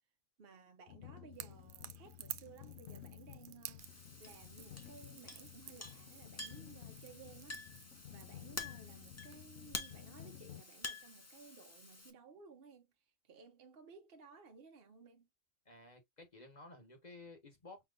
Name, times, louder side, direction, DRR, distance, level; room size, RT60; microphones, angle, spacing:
voice 1, 0.4-7.6 8.1-15.3, right 5 dB, 55° right, 0.9 m, -58 dB
sound 1, 0.9-10.6, left 12 dB, 75° left, 1.0 m, -54 dB
Crackle / Crack, 1.3-9.4, right 10 dB, 70° right, 0.5 m, -53 dB
Chink clink, 3.8-12.1, left 2 dB, 20° left, 0.5 m, -49 dB
voice 2, 15.6-17.8, left 2 dB, 35° left, 1.1 m, -55 dB
5.9 x 2.9 x 2.4 m
omnidirectional pair, 1.4 m